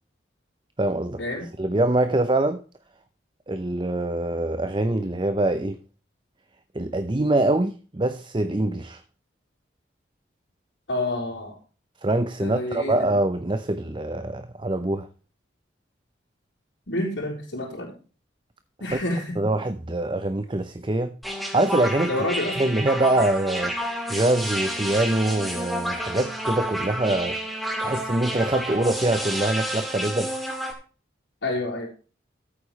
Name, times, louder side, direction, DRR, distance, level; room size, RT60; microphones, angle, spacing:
voice 1, 0.8-1.2 1.6-2.6 3.5-5.8 6.7-9.0 12.0-15.1 18.9-19.0 19.4-22.1 22.6-23.8 24.1-30.4, right 2 dB, 25° right, 0.7 m, -24 dB
voice 2, 10.9-11.6 12.4-13.1 16.9-17.9 18.8-19.4 22.0-22.6 31.4-31.9, left 1 dB, 80° left, 4.2 m, -28 dB
sound 1, 21.2-30.7, equal, ahead, 2.2 m, -30 dB
14.0 x 8.5 x 3.2 m
head